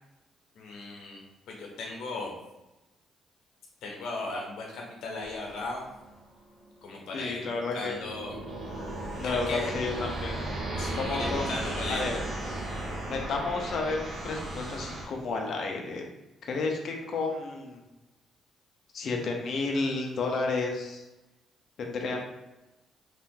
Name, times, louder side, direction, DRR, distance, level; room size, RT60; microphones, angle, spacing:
voice 1, 0.5-2.4 3.8-5.9 6.8-8.4 9.2-9.7 10.8-12.0, left 3 dB, 80° left, -1 dB, 1.1 m, -37 dB
sound 1, 5.2-15.0, right 1 dB, 50° right, 1.2 m, -36 dB
voice 2, 7.1-8.0 9.1-10.3 10.9-11.5 11.9-12.1 13.0-16.0 16.4-17.8 18.9-21.0 21.8-22.2, left 3 dB, 60° left, 1 dB, 0.8 m, -31 dB
3.2 x 2.8 x 3.7 m, 1.0 s
cardioid pair, 90°, 0 cm